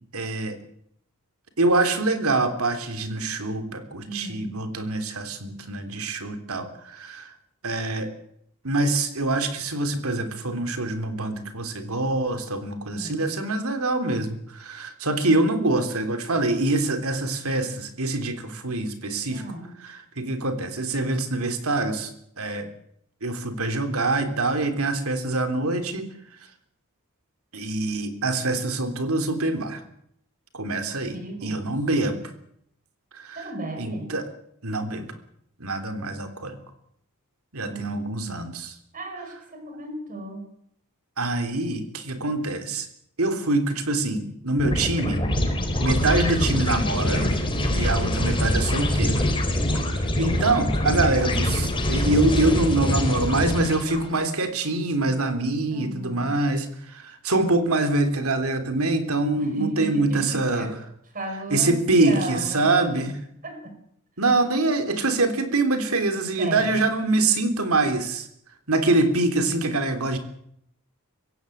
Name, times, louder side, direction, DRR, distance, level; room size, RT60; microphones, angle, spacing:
voice 1, 0.1-0.6 1.6-7.3 7.6-8.1 8.6-19.4 19.8-22.1 22.4-22.7 23.2-26.1 27.5-29.8 30.5-32.2 33.1-33.5 33.8-34.3 34.6-35.1 35.6-36.6 37.5-38.7 41.2-42.9 43.2-45.2 45.8-47.3 47.7-49.3 50.2-60.7 61.5-63.2 64.2-68.3 68.7-70.2, right 2 dB, 70° right, 8 dB, 3.5 m, -25 dB
voice 2, 4.1-4.6 12.9-13.4 19.3-19.7 31.1-31.8 33.4-34.1 37.6-38.5 38.9-40.4 48.0-48.6 55.7-56.4 59.4-60.7 61.1-63.1 63.4-63.7 66.4-66.8, right 2 dB, 40° right, 5 dB, 5.3 m, -35 dB
sound 1, 44.6-54.0, left 1 dB, 25° left, 4.2 m, -24 dB
24.0 x 16.5 x 8.7 m, 0.73 s
head